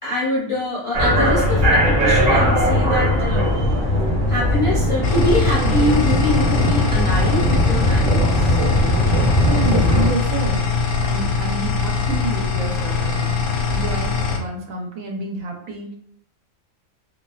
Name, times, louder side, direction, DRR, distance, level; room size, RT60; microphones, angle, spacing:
voice 1, 0.0-3.5 4.3-8.6, left 1 dB, 40° left, -7 dB, 0.4 m, -24 dB
sound 1, 0.9-10.1, equal, 45° right, 0.8 m, -18 dB
sound 2, 5.0-14.4, left 5 dB, 85° left, 1.0 m, -22 dB
voice 2, 9.5-10.6 11.0-13.4 13.7-15.9, right 3 dB, 90° right, 1 dB, 1.0 m, -29 dB
2.4 x 2.2 x 2.3 m, 0.70 s
omnidirectional pair, 1.4 m